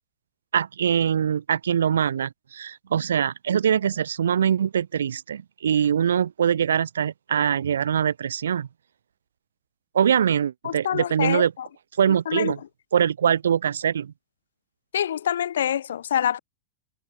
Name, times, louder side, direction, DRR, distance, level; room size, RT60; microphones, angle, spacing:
voice 1, 0.5-8.7 9.9-11.5 12.0-12.6 12.9-14.1, right 8 dB, 65° right, 6.4 m, -23 dB
voice 2, 10.6-11.7 12.1-12.5 14.9-16.4, left 10 dB, 65° left, 3.5 m, -26 dB
figure-of-eight pair, 90°, 0 cm